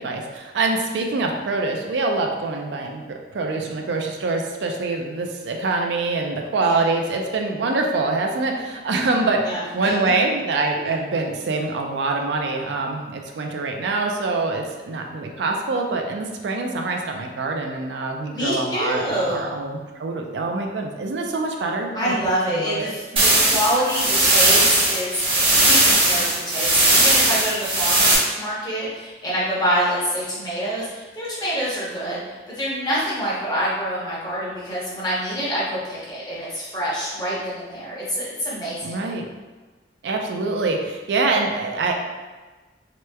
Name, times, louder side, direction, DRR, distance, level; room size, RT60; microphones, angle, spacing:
voice 1, 0.0-22.1 22.5-22.9 23.1-23.5 38.8-39.2 40.0-41.9, right 3 dB, 80° right, 2 dB, 0.4 m, -25 dB
voice 2, 9.4-10.1 10.7-10.9 18.3-19.4 21.9-39.0, equal, 25° left, -8 dB, 0.9 m, -26 dB
sound 1, 23.2-28.2, right 2 dB, 30° right, 0.7 m, -18 dB
3.2 x 2.9 x 2.2 m, 1.3 s
head